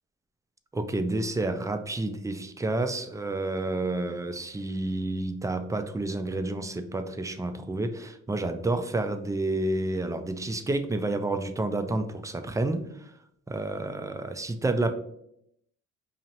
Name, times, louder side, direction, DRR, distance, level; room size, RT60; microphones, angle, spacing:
voice 1, 0.7-13.1 13.5-14.9, right 2 dB, 10° right, 9 dB, 0.4 m, -30 dB
5.2 x 2.8 x 2.8 m, 0.75 s
cardioid pair, 90°, 30 cm